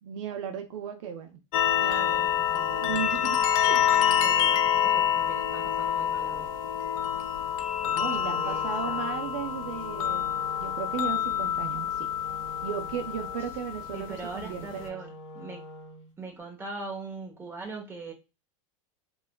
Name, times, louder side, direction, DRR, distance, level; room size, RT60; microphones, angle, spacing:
voice 1, 0.0-1.4 2.8-3.9 7.8-12.1 12.6-15.0, right 8 dB, 65° right, 0.5 m, -36 dB
sound 1, 1.5-14.9, left 9 dB, 80° left, 0.4 m, -27 dB
voice 2, 1.7-3.0 4.2-6.5 7.8-9.1 13.9-15.6 16.2-18.1, right 3 dB, 15° right, 0.9 m, -41 dB
Wind instrument woodwind instrument, 7.9-16.1, left 1 dB, 35° left, 0.9 m, -45 dB
3.2 x 2.3 x 2.2 m
supercardioid pair, 120°, 17 cm